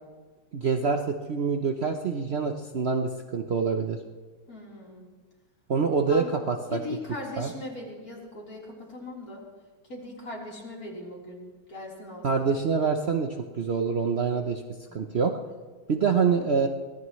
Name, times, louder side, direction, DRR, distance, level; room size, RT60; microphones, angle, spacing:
voice 1, 0.5-4.0 5.7-6.8 7.4-7.5 12.2-14.6 14.9-15.3 15.9-16.7, right 5 dB, 85° right, 3 dB, 0.5 m, -26 dB
voice 2, 4.5-5.1 6.1-6.3 6.7-9.4 9.9-11.4 11.7-12.5 14.9-15.0, left 2 dB, 40° left, -4 dB, 4.3 m, -39 dB
24.0 x 17.5 x 3.2 m, 1.4 s
omnidirectional pair, 2.3 m